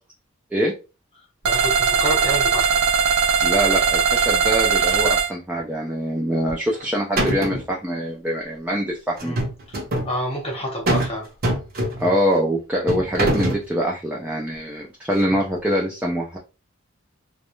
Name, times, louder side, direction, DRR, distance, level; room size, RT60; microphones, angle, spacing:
voice 1, 1.4-2.8 9.2-9.4 10.0-11.3, equal, 30° left, 0 dB, 0.9 m, -28 dB
sound 1, 1.4-5.3, right 6 dB, 85° right, 0.5 m, -19 dB
voice 2, 3.4-9.4 12.0-16.4, equal, 5° right, -2 dB, 0.3 m, -24 dB
sound 2, 6.5-6.9 7.2-7.7 9.2-10.1 10.9-11.2 11.4-12.2 12.9-13.6, right 1 dB, 45° right, 0.7 m, -23 dB
2.3 x 2.1 x 2.9 m, 0.30 s
head